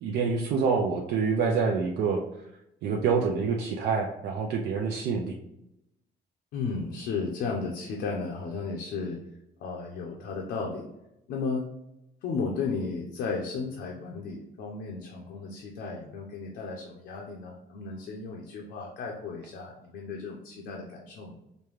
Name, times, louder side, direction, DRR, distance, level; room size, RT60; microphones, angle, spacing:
voice 1, 0.0-2.2 2.8-5.4, right 5 dB, 80° right, -1 dB, 0.5 m, -26 dB
voice 2, 6.5-9.2 9.6-10.9 11.3-11.7 12.2-21.4, left 4 dB, 85° left, -1 dB, 0.7 m, -34 dB
5.1 x 2.2 x 3.1 m, 0.86 s
cardioid pair, 155°, 17 cm